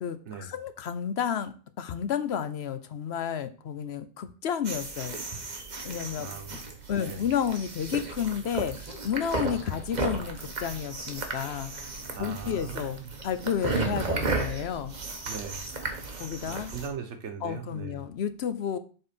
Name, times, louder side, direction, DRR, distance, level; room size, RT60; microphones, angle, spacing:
voice 1, 0.0-5.2 5.8-6.6 6.9-11.9 12.2-13.0 13.2-15.0 16.2-16.7 17.4-18.8, left 8 dB, 65° left, 12 dB, 0.9 m, -31 dB
sound 1, 4.6-16.9, right 3 dB, 40° right, 1.2 m, -34 dB
voice 2, 6.2-7.2 12.1-13.1 15.2-15.6 16.5-18.0, right 6 dB, 75° right, 6 dB, 1.3 m, -40 dB
7.3 x 3.9 x 5.1 m, 0.39 s
omnidirectional pair, 1.2 m